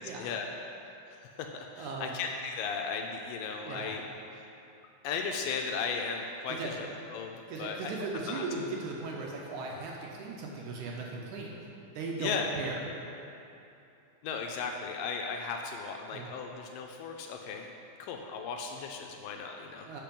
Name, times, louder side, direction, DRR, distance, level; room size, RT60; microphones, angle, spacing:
voice 1, 0.2-0.5 1.1-4.0 4.3-4.5 5.0-7.3 7.6-7.9 8.3-8.4 12.2-12.5 14.2-17.7 18.0-19.9, left 5 dB, 80° left, 2 dB, 2.1 m, -36 dB
voice 2, 1.8-2.2 3.6-3.9 6.5-6.7 7.5-11.6 12.0-12.8 16.1-16.3 19.9-20.0, right 3 dB, 75° right, -1 dB, 1.8 m, -37 dB
7.6 x 5.9 x 5.2 m, 2.8 s
omnidirectional pair, 4.2 m